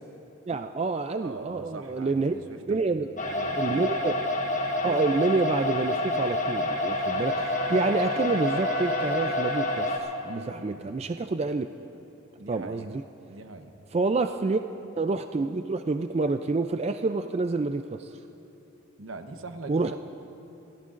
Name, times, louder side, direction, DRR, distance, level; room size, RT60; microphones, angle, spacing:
voice 1, 0.5-2.4 2.7-3.1 3.6-4.3 4.8-11.7 12.5-13.0 13.9-14.6 15.0-18.2 19.7-20.0, right 3 dB, 30° right, 8 dB, 0.3 m, -28 dB
voice 2, 1.2-2.6 2.9-3.0 3.3-3.7 10.3-11.0 12.4-12.9 13.3-13.7 19.0-20.0, right 3 dB, 80° right, 6 dB, 1.0 m, -42 dB
sound 1, 3.2-10.0, left 1 dB, 35° left, 1.2 m, -28 dB
Wind instrument woodwind instrument, 6.6-10.6, left 1 dB, 55° left, 2.4 m, -40 dB
26.5 x 17.0 x 2.5 m, 2.9 s
head